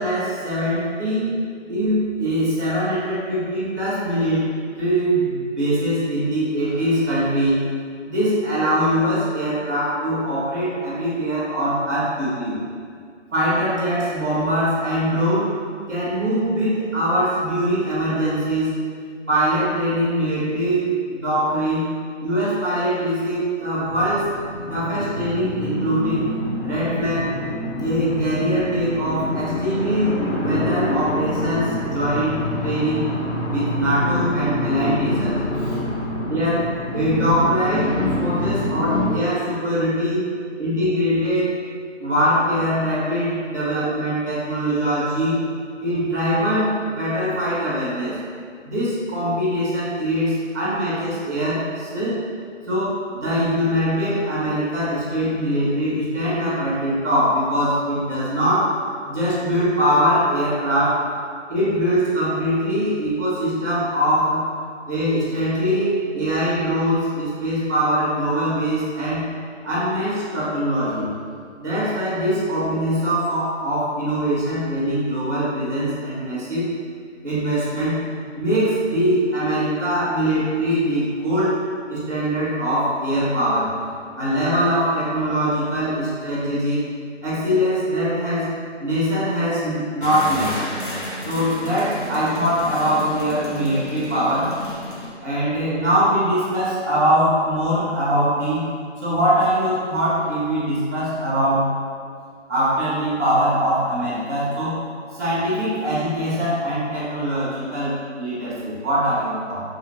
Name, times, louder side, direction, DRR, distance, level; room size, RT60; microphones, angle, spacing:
voice 1, 0.0-1.4 1.7-4.4 4.7-7.6 8.0-12.5 13.3-15.5 15.9-18.7 19.3-21.9 22.2-24.3 24.7-26.3 26.6-27.4 27.8-33.2 33.5-35.8 36.2-40.2 40.6-41.5 42.0-45.5 45.8-48.2 48.6-52.1 52.7-58.8 59.1-61.1 61.5-64.4 64.8-69.2 69.6-71.1 71.6-76.7 77.2-78.0 78.3-83.7 84.2-86.8 87.2-88.5 88.8-90.6 91.2-94.6 95.2-98.7 99.0-101.7 102.5-104.8 105.1-109.6, equal, 15° right, -9 dB, 0.7 m, -22 dB
sound 1, 23.8-39.0, left 1 dB, 75° left, 1.4 m, -26 dB
sound 2, 90.0-95.1, left 1 dB, 45° left, 0.6 m, -32 dB
2.8 x 2.7 x 3.1 m, 2.2 s
figure-of-eight pair, 160°, 36 cm